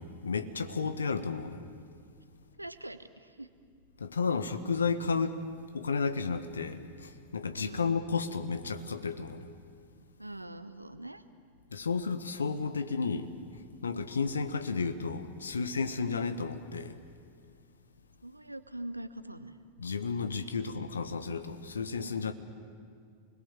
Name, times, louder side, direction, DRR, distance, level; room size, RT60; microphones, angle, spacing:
voice 1, 0.0-1.6 4.0-5.4 5.7-9.5 11.7-13.3 13.8-17.0 19.8-22.3, left 5 dB, 70° left, 10 dB, 1.4 m, -32 dB
voice 2, 2.6-3.5 7.6-7.9 10.2-11.2 18.2-19.6 20.4-20.5, right 1 dB, 85° right, 12 dB, 1.1 m, -43 dB
29.0 x 21.0 x 7.5 m, 2.3 s
figure-of-eight pair, 90°, 0 cm